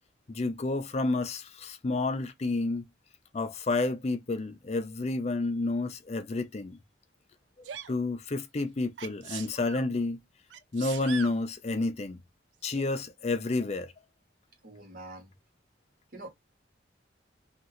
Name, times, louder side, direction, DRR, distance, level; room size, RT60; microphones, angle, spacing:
voice 1, 0.3-2.9 3.3-6.8 7.9-10.2 10.7-12.2 12.6-13.9, left 2 dB, 35° left, 0.5 m, -30 dB
Sneeze, 7.6-8.0 9.0-9.9 10.5-11.4 12.7-12.8, right 8 dB, 70° right, 0.4 m, -41 dB
voice 2, 14.6-15.3 16.1-16.3, right 2 dB, 50° right, 1.0 m, -44 dB
2.8 x 2.6 x 2.9 m
head